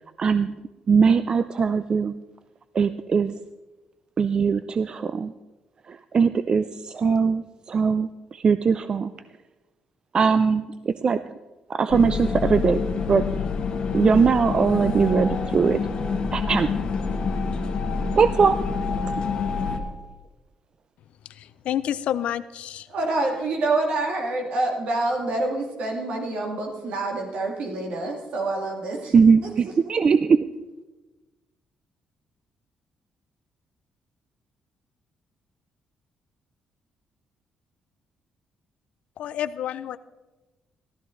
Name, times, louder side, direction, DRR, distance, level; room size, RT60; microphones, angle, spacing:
voice 1, 0.2-0.5 0.9-2.1 2.7-3.4 4.2-5.3 5.9-9.1 10.1-11.2 11.7-12.8 13.1-13.3 13.9-15.8 16.3-16.8 18.1-18.7 29.1-30.5, right 5 dB, 40° right, 0.4 m, -21 dB
sound 1, 11.9-19.8, left 5 dB, 45° left, 1.6 m, -27 dB
voice 2, 21.2-22.9 39.2-40.0, left 10 dB, 75° left, 0.4 m, -29 dB
voice 3, 22.9-29.1 29.4-29.5, right 2 dB, 70° right, 2.1 m, -27 dB
15.0 x 13.0 x 3.8 m
cardioid pair, 105°, 2 cm